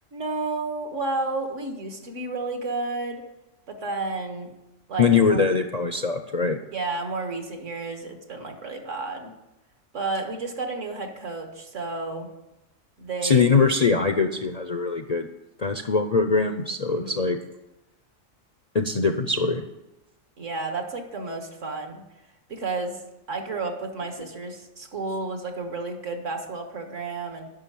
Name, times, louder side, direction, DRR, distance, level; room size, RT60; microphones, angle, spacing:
voice 1, 0.1-3.2 3.7-4.5 4.9-5.4 6.7-9.3 9.9-12.3 13.0-13.5 16.9-17.2 20.4-22.0 22.5-23.0 23.3-27.5, right 3 dB, 65° right, 4 dB, 2.0 m, -31 dB
voice 2, 5.0-6.6 13.2-15.3 15.6-17.4 18.7-19.6, left 4 dB, 45° left, 6 dB, 0.6 m, -22 dB
10.5 x 6.4 x 9.1 m, 0.94 s
omnidirectional pair, 1.4 m